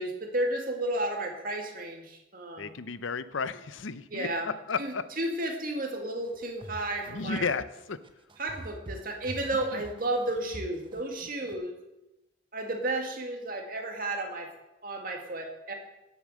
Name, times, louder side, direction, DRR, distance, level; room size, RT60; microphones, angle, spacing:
voice 1, 0.0-2.7 4.1-4.5 4.8-7.5 8.4-11.8 12.5-14.5 14.8-15.7, right 1 dB, 45° right, 3 dB, 2.0 m, -32 dB
voice 2, 2.6-5.0 7.1-8.0 9.7-9.8, left 5 dB, 80° left, 14 dB, 0.7 m, -33 dB
sound 1, 6.2-11.6, right 1 dB, 25° right, 0.8 m, -44 dB
16.0 x 7.0 x 6.3 m, 0.96 s
head